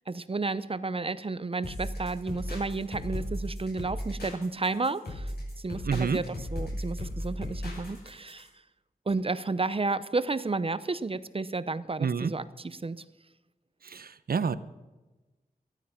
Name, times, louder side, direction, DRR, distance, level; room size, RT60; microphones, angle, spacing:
voice 1, 0.0-5.3 5.6-8.5 9.1-13.0, right 3 dB, 35° right, 15 dB, 0.7 m, -32 dB
sound 1, 1.6-8.5, equal, 80° left, 6.3 m, -36 dB
voice 2, 5.8-6.2 12.0-12.3 13.8-14.6, right 6 dB, 70° right, 14 dB, 0.8 m, -28 dB
15.5 x 13.5 x 5.9 m, 1.1 s
wide cardioid pair, 75°, 16 cm